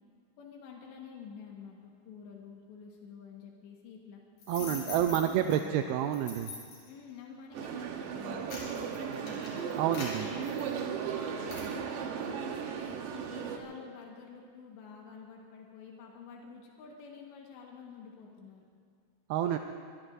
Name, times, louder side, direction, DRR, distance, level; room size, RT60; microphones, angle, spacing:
voice 1, 0.4-4.2 4.6-6.0 6.9-9.7 10.2-12.7 13.1-18.6, left 6 dB, 90° left, -1 dB, 3.7 m, -49 dB
sound 1, 4.4-5.6 6.1-6.9 7.5-7.7 8.2-11.0 11.5-11.7, left 3 dB, 60° left, 5.8 m, -43 dB
voice 2, 4.5-6.5 9.8-10.3 19.3-19.6, right 10 dB, 85° right, 6 dB, 2.1 m, -29 dB
sound 2, 7.5-13.6, right 7 dB, 70° right, 2.3 m, -36 dB
23.5 x 22.0 x 2.6 m, 2.2 s
omnidirectional pair, 4.9 m